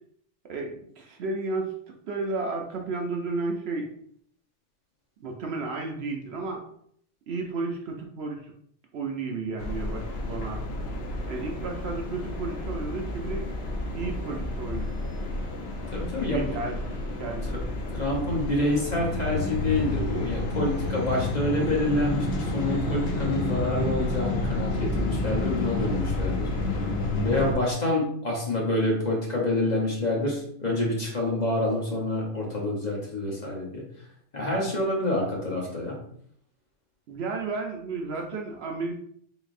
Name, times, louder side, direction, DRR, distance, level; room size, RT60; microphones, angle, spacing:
voice 1, 0.4-1.7 2.1-3.9 5.2-6.6 7.3-8.5 8.9-10.6 11.3-13.5 13.9-15.0 16.2-16.8 17.2-17.5 37.1-39.0, right 3 dB, 65° right, 2 dB, 0.9 m, -32 dB
sound 1, 9.6-27.5, left 2 dB, 65° left, 0.9 m, -30 dB
voice 2, 15.9-16.6 17.4-17.6 17.9-26.8 27.2-33.9 34.3-36.0, left 1 dB, 40° left, -2 dB, 1.1 m, -27 dB
3.8 x 3.6 x 2.5 m, 0.65 s
omnidirectional pair, 1.2 m